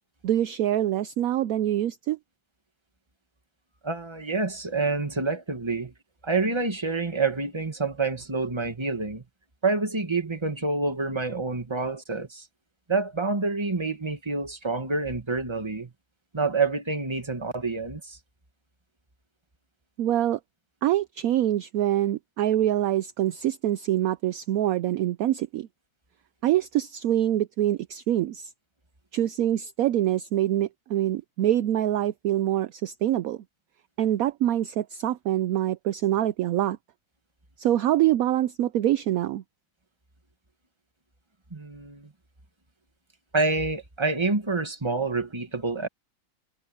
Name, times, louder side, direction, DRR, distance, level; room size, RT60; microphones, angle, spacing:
voice 1, 0.2-2.2 20.0-20.4 20.8-25.7 26.4-28.5 29.1-33.4 34.0-36.8 37.6-39.4, right 12 dB, 70° right, 0.9 m, -25 dB
voice 2, 3.8-5.9 6.2-9.2 9.6-12.5 12.9-15.9 16.3-18.2 41.5-42.1 43.3-45.9, right 3 dB, 15° right, 1.7 m, -27 dB
omnidirectional pair, 1.8 m